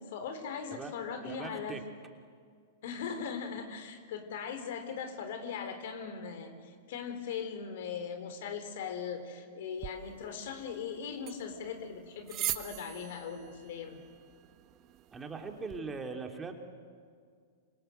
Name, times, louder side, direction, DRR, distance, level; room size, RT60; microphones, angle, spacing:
voice 1, 0.1-1.8 2.8-14.0, left 6 dB, 60° left, 8 dB, 3.8 m, -39 dB
voice 2, 1.2-1.8 15.1-16.5, right 4 dB, 15° right, 3 dB, 3.0 m, -40 dB
sound 1, 9.8-15.8, right 14 dB, 35° right, 1.4 m, -43 dB
27.5 x 26.0 x 8.0 m, 2.1 s
hypercardioid pair, 110°, 0 cm